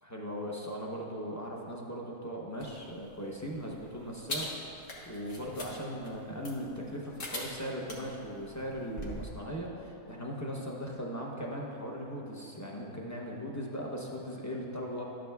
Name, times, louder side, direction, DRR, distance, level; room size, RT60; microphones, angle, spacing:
voice 1, 0.0-15.0, equal, 20° left, -3 dB, 0.4 m, -39 dB
sound 1, 2.6-9.3, left 1 dB, 55° left, 1.6 m, -43 dB
12.5 x 8.9 x 2.3 m, 2.9 s
omnidirectional pair, 1.7 m